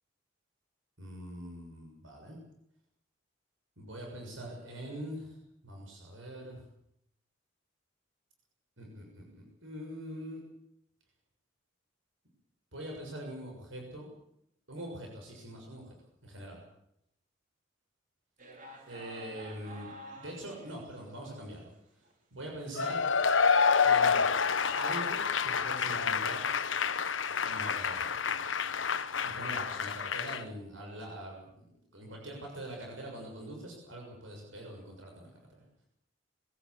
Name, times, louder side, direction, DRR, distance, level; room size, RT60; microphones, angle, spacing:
voice 1, 1.0-2.4 3.8-5.4 5.6-6.6 8.8-10.4 12.7-14.1 14.7-15.9 16.2-16.6 18.9-21.7 22.3-23.0 23.8-24.1 24.7-26.5 27.4-28.2 29.2-31.7 31.9-35.6, right 1 dB, 85° right, 0 dB, 6.7 m, -43 dB
sound 1, 18.4-21.6 22.0-22.1 22.7-22.8 23.2-27.2, equal, 45° right, 4.4 m, -51 dB
Cheering / Applause / Crowd, 22.8-30.4, left 6 dB, 80° left, 1.1 m, -28 dB
22.5 x 16.5 x 8.6 m, 0.75 s
head